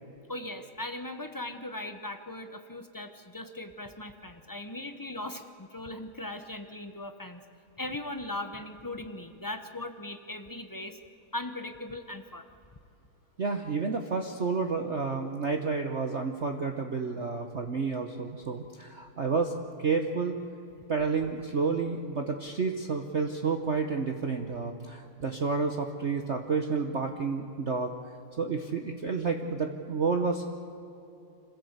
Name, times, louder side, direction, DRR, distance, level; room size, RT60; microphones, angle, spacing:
voice 1, 0.3-7.4 7.8-11.0 11.3-12.4, left 1 dB, 25° left, 7 dB, 0.4 m, -39 dB
voice 2, 13.4-19.5 19.8-20.4 20.9-27.9 28.4-30.5, right 4 dB, 45° right, 5 dB, 1.1 m, -30 dB
26.0 x 16.0 x 8.1 m, 2.7 s
omnidirectional pair, 2.2 m